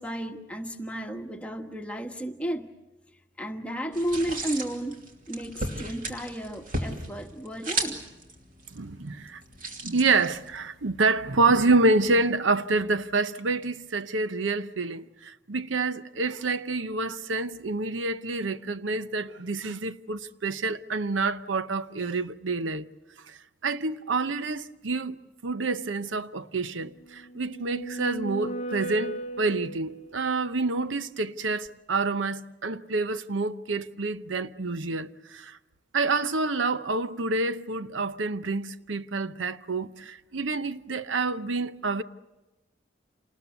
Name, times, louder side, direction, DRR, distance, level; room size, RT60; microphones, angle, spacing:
voice 1, 0.0-2.7 3.4-5.0 5.3-8.0, right 1 dB, 5° left, 1.3 m, -33 dB
sound 1, 3.9-10.7, right 2 dB, 45° right, 2.9 m, -35 dB
voice 2, 8.7-9.4 9.8-22.9 23.3-25.1 25.4-35.6 35.9-42.0, right 3 dB, 85° right, 0.8 m, -28 dB
sound 2, 27.2-30.2, right 1 dB, 35° left, 0.8 m, -36 dB
28.0 x 20.0 x 8.2 m
head